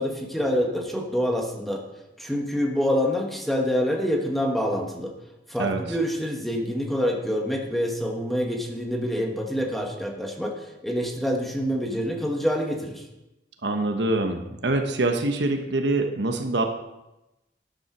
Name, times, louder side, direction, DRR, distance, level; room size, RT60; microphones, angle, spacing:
voice 1, 0.0-1.8 2.2-5.1 5.5-13.0, equal, ahead, 1 dB, 1.4 m, -26 dB
voice 2, 13.6-16.6, right 2 dB, 70° right, 5 dB, 1.1 m, -25 dB
10.5 x 7.2 x 6.0 m, 0.95 s
head